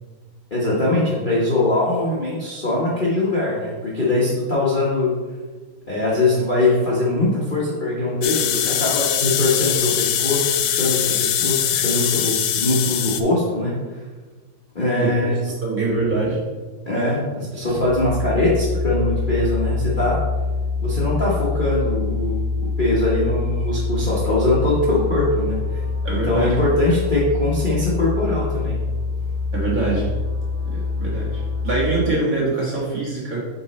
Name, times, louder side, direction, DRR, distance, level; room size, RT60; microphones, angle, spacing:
voice 1, 0.5-5.1 5.9-14.0 14.7-15.4 16.8-20.2 20.8-25.8 26.2-28.8, left 2 dB, 35° left, -7 dB, 0.9 m, -22 dB
sound 1, 8.2-13.2, left 10 dB, 90° left, 0.9 m, -22 dB
voice 2, 15.0-15.3 15.6-16.4 26.0-26.6 29.5-30.1 30.7-33.5, right 3 dB, 40° right, -6 dB, 1.8 m, -24 dB
sound 2, 17.6-32.1, left 4 dB, 5° left, 1.8 m, -25 dB
6.7 x 4.1 x 4.2 m, 1.4 s
omnidirectional pair, 2.4 m